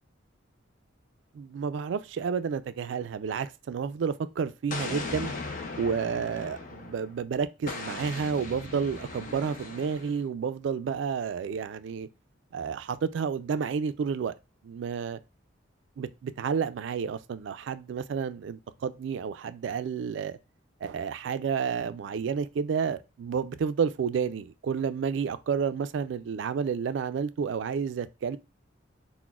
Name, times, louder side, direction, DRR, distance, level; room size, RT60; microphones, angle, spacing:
voice 1, 1.3-5.3 5.8-12.1 12.5-14.3 14.6-15.2 16.0-20.4 20.8-28.4, right 6 dB, 65° right, 0.3 m, -30 dB
Explosion, 4.7-7.1 7.7-10.2, left 3 dB, 45° left, 0.5 m, -38 dB
5.9 x 2.1 x 2.3 m
head